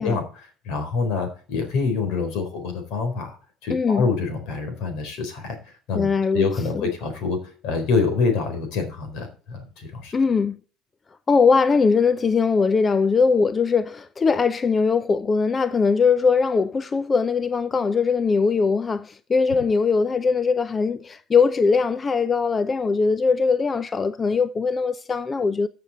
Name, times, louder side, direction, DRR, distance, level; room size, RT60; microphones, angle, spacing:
voice 1, 0.0-3.4 3.6-5.6 5.9-10.1, left 4 dB, 70° left, 4.1 m, -26 dB
voice 2, 3.7-4.1 5.9-6.5 6.8-6.9 10.1-10.6 11.3-25.7, left 5 dB, 25° left, 0.5 m, -21 dB
14.5 x 6.8 x 4.3 m
cardioid pair, 125°, 0 cm